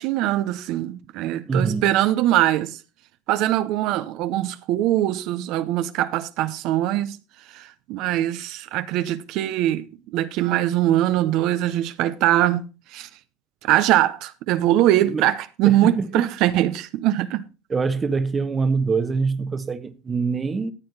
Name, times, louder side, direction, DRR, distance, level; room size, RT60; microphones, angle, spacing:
voice 1, 0.0-2.8 3.3-7.2 7.5-13.1 13.6-17.4, right 13 dB, 60° right, 0.8 m, -22 dB
voice 2, 1.5-1.9 15.0-15.2 15.7-16.2 17.7-20.7, right 4 dB, 20° right, 1.0 m, -24 dB
14.0 x 7.9 x 4.0 m
supercardioid pair, 115°, 0 cm